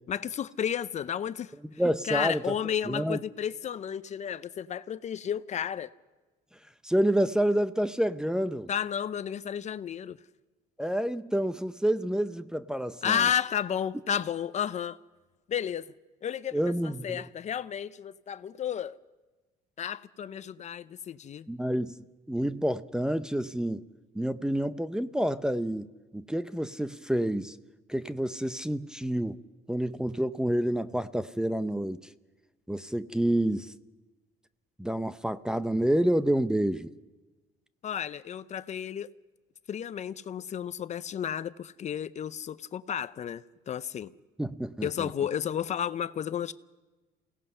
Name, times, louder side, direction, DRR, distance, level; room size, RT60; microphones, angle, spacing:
voice 1, 0.1-5.9 8.7-10.2 13.0-15.0 15.5-15.9 16.2-19.0 19.8-21.5 37.8-39.1 39.7-44.1 44.8-46.5, left 9 dB, 45° left, 0.6 m, -32 dB
voice 2, 1.8-2.5 2.8-3.2 6.8-8.7 10.8-13.2 16.5-17.2 21.5-22.0 22.3-23.8 24.1-27.6 27.9-29.4 29.7-32.0 32.7-33.7 34.8-36.9 44.4-45.1, right 1 dB, 5° right, 0.6 m, -28 dB
28.5 x 17.5 x 5.5 m
cardioid pair, 110°, 17 cm